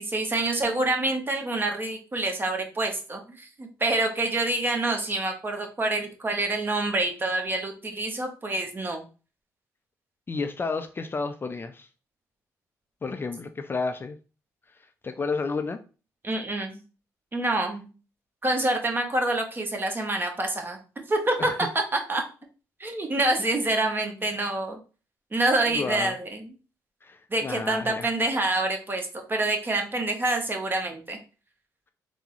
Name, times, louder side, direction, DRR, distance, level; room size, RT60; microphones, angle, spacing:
voice 1, 0.0-9.0 16.2-16.8 17.3-17.9 18.4-20.8 21.1-22.2 22.8-24.8 25.3-26.5 27.3-31.2, right 2 dB, 30° right, 0.8 m, -27 dB
voice 2, 10.3-11.9 13.0-14.2 14.7-15.8 21.4-21.7 24.1-24.2 25.7-26.2 27.0-28.1, left 4 dB, 30° left, 0.3 m, -32 dB
3.5 x 2.0 x 3.0 m
supercardioid pair, 60°, 7 cm